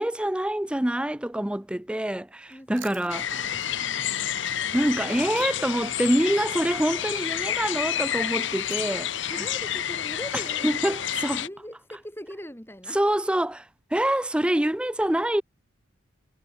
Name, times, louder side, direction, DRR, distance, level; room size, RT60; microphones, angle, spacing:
voice 1, 0.0-3.5 4.7-9.3 10.6-11.4 12.9-13.7 13.9-15.4, right 1 dB, 5° right, 0.4 m, -26 dB
voice 2, 2.5-4.3 5.0-5.3 5.6-5.7 9.3-13.0 13.3-13.4, equal, 10° left, 4.2 m, -42 dB
Chewing mastication, 2.5-5.9 6.1-10.5, right 13 dB, 80° right, 6.7 m, -54 dB
sound 1, 3.1-11.5, left 10 dB, 70° left, 0.9 m, -29 dB
head